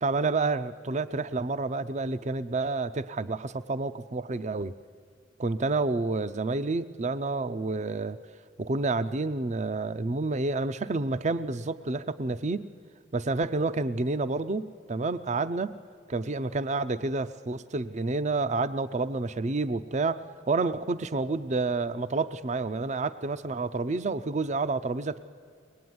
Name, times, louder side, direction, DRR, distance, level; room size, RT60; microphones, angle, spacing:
voice 1, 0.0-4.7 5.4-8.2 8.6-12.7 13.1-15.8 16.1-25.2, right 3 dB, 40° right, 14 dB, 0.5 m, -29 dB
23.5 x 20.0 x 9.5 m, 2.1 s
head